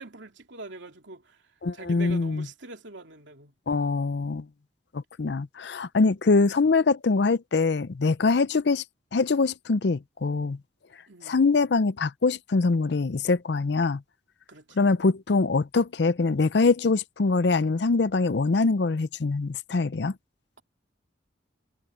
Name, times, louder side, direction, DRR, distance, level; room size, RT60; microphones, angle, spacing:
voice 1, 0.0-3.5 11.1-11.5 14.5-14.9, right 2 dB, 75° right, 2.9 m, -44 dB
voice 2, 1.6-2.5 3.7-4.5 4.9-8.8 9.1-10.6 11.3-14.0 14.8-20.1, left 3 dB, 60° left, 0.5 m, -23 dB
head